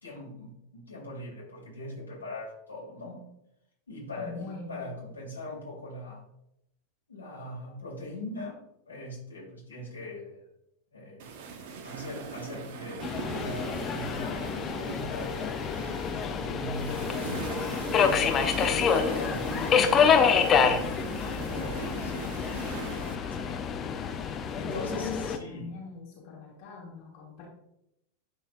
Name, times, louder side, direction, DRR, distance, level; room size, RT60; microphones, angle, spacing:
voice 1, 0.0-3.2 3.9-6.2 7.1-8.6 8.9-10.4 10.9-11.3 11.8-15.7 16.3-17.4 19.1-22.1 22.7-23.6 24.6-25.7, left 1 dB, 75° left, -4 dB, 2.6 m, -41 dB
voice 2, 4.2-4.7 24.7-27.5, left 3 dB, 45° left, -5 dB, 2.2 m, -43 dB
sound 1, 11.2-23.2, right 5 dB, 50° right, 0.9 m, -40 dB
Subway metro underground, 13.0-25.4, left 6 dB, 25° left, 0.7 m, -27 dB
11.0 x 4.1 x 2.5 m, 0.81 s
figure-of-eight pair, 90°, 0 cm